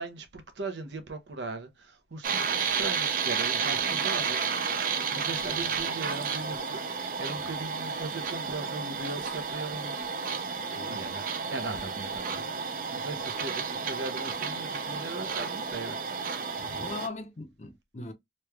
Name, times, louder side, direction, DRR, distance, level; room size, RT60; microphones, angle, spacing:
voice 1, 0.0-4.5 5.1-10.0 10.8-12.5 12.9-16.0, right 3 dB, 80° right, 0.7 m, -38 dB
sound 1, 2.2-17.1, right 5 dB, 50° right, 0.4 m, -32 dB
voice 2, 5.4-5.8 10.6-11.1 16.6-18.1, left 3 dB, 40° left, 0.6 m, -41 dB
3.1 x 2.3 x 3.2 m
head